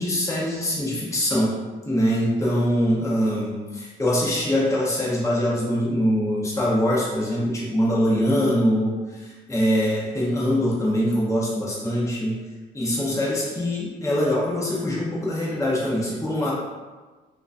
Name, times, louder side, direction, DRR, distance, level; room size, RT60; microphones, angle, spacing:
voice 1, 0.0-1.6 1.9-12.4 12.7-16.5, equal, 15° left, -6 dB, 0.8 m, -23 dB
3.6 x 2.6 x 2.5 m, 1.3 s
cardioid pair, 90°, 20 cm